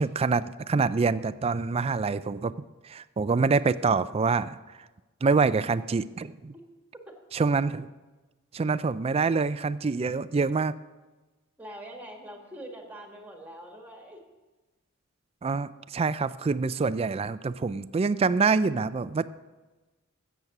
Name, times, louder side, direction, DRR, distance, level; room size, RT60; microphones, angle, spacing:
voice 1, 0.0-2.5 2.8-4.6 5.2-6.5 7.3-7.9 8.5-10.7 15.4-19.3, right 4 dB, 30° right, 16 dB, 0.3 m, -26 dB
voice 2, 11.6-14.2, right 1 dB, 10° right, 2 dB, 1.8 m, -44 dB
13.5 x 8.1 x 5.9 m, 1.2 s
head